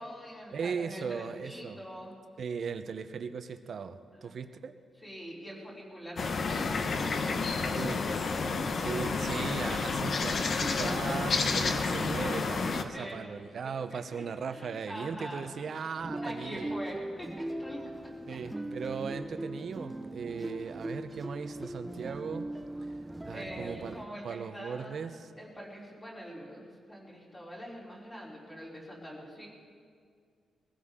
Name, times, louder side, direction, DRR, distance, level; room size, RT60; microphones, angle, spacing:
voice 1, 0.0-2.2 4.1-4.4 5.0-8.6 10.6-11.4 12.0-12.4 12.8-13.2 13.5-14.2 14.5-15.7 16.2-18.1 23.3-25.1 25.4-29.5, equal, 15° left, -5 dB, 3.6 m, -44 dB
voice 2, 0.5-1.8 2.4-4.7 7.7-8.0 8.8-16.8 18.3-22.6 23.2-25.3, right 6 dB, 50° right, 9 dB, 0.7 m, -38 dB
sound 1, 6.2-12.8, left 4 dB, 45° left, 0.8 m, -30 dB
sound 2, 16.0-24.0, right 1 dB, 5° right, 0.5 m, -40 dB
22.5 x 15.0 x 3.7 m, 2.2 s
wide cardioid pair, 155°, 0 cm